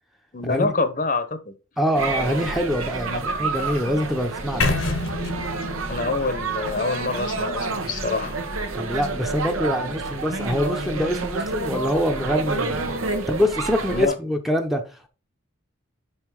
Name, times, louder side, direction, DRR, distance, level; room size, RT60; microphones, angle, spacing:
voice 1, 0.3-1.5 3.0-3.2 5.9-8.4 13.9-14.2, left 3 dB, 40° left, 0.8 m, -26 dB
voice 2, 1.8-4.7 8.7-15.1, equal, ahead, 0.8 m, -25 dB
sound 1, 1.9-14.1, right 3 dB, 90° right, 1.3 m, -29 dB
sound 2, 4.6-8.6, left 2 dB, 80° left, 1.2 m, -29 dB
5.6 x 5.6 x 4.7 m
head